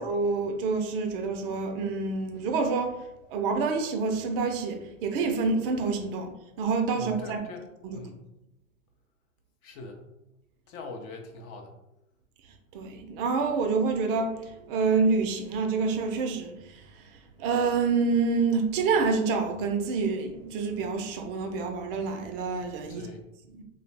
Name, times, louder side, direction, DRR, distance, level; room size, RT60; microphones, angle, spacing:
voice 1, 0.0-3.0 3.3-7.4 7.8-8.0 12.7-23.1 23.5-23.6, right 4 dB, 45° right, 5 dB, 0.4 m, -27 dB
voice 2, 6.9-7.7 7.9-8.1 9.6-10.0 10.7-11.7 22.9-23.2, left 3 dB, 40° left, 3 dB, 0.5 m, -41 dB
2.4 x 2.1 x 3.1 m, 0.91 s
hypercardioid pair, 110°, 39 cm